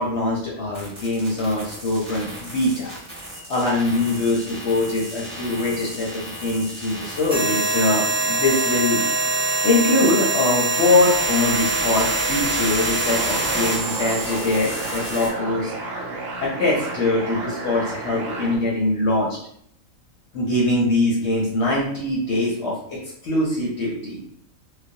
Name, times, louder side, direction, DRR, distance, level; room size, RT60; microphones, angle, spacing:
voice 1, 0.0-3.0 3.5-9.0 9.6-15.7 16.4-19.4 20.3-24.2, left 2 dB, 65° left, -4 dB, 0.7 m, -22 dB
sound 1, 0.7-15.3, right 2 dB, 25° right, 0.8 m, -26 dB
sound 2, 12.4-18.6, right 2 dB, 75° right, 1.0 m, -32 dB
2.3 x 2.1 x 2.6 m, 0.67 s
omnidirectional pair, 1.4 m